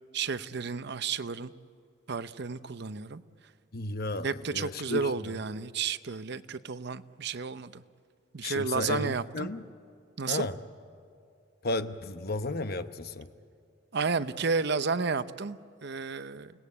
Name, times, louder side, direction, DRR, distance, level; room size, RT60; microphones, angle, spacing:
voice 1, 0.1-1.5 2.1-3.2 4.2-7.8 8.3-9.5 10.2-10.5 13.9-16.5, right 5 dB, 60° right, 13 dB, 0.7 m, -32 dB
voice 2, 3.7-5.3 8.4-9.6 10.3-10.6 11.6-13.3, left 2 dB, 55° left, 10 dB, 0.9 m, -33 dB
29.0 x 19.0 x 8.5 m, 2.3 s
head